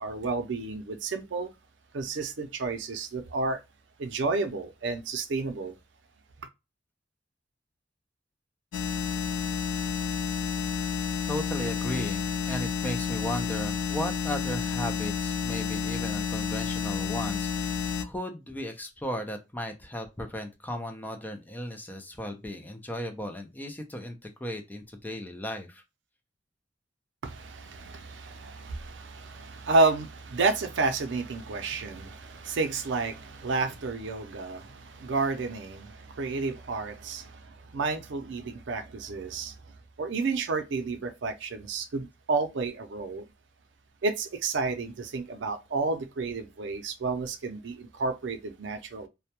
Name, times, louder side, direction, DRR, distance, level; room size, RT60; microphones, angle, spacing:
voice 1, 0.0-1.5 1.9-3.6 4.0-5.7 27.2-39.6 40.0-43.2 44.0-49.1, right 3 dB, 75° right, 0.5 m, -31 dB
sound 1, 8.7-18.1, left 6 dB, 85° left, 0.3 m, -30 dB
voice 2, 11.3-25.8, left 1 dB, 10° left, 0.4 m, -36 dB
2.1 x 2.1 x 2.7 m
head